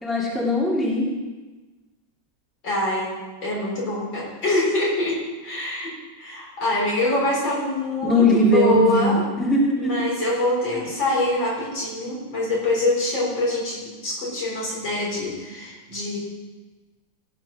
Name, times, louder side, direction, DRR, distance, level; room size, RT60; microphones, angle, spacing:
voice 1, 0.0-1.1 8.0-10.1 10.7-10.8, left 1 dB, ahead, -4 dB, 2.3 m, -20 dB
voice 2, 2.6-3.2 3.4-5.9 6.2-9.3 9.8-16.2, left 2 dB, 75° left, -5 dB, 4.9 m, -24 dB
16.5 x 6.4 x 6.0 m, 1.2 s
omnidirectional pair, 2.1 m